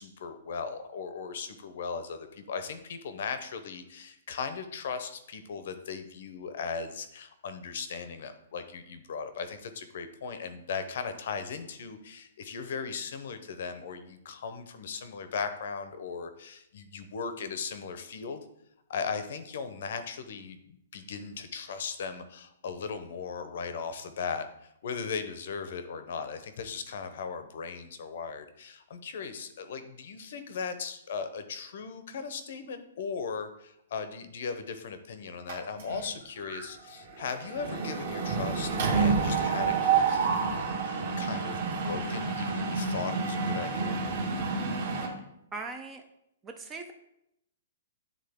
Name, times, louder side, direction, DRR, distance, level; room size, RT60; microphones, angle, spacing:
voice 1, 0.0-18.4 18.9-44.0, left 5 dB, 45° left, 10 dB, 0.7 m, -38 dB
Mechanisms, 35.5-36.1 36.4-36.6 36.9-45.1, right 5 dB, 40° right, 1.3 m, -29 dB
voice 2, 45.5-46.0 46.4-46.9, right 3 dB, 10° right, 5 dB, 0.3 m, -39 dB
9.8 x 3.6 x 3.5 m, 0.79 s
hypercardioid pair, 180°, 0 cm